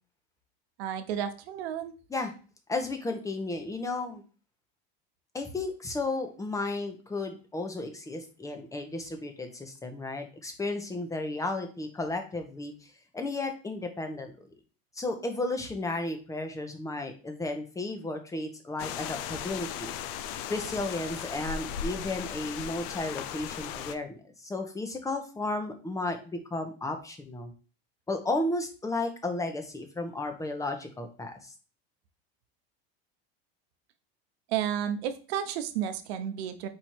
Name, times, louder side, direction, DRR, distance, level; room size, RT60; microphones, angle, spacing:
voice 1, 0.8-1.9 34.5-36.7, right 9 dB, 90° right, 9 dB, 0.7 m, -32 dB
voice 2, 2.7-4.2 5.3-12.7 13.1-14.5 15.0-19.9 20.5-27.5 28.1-31.5, left 2 dB, 10° left, 5 dB, 0.8 m, -33 dB
sound 1, 18.8-24.0, left 9 dB, 70° left, 0.5 m, -37 dB
4.7 x 2.6 x 4.3 m, 0.36 s
supercardioid pair, 125°, 30 cm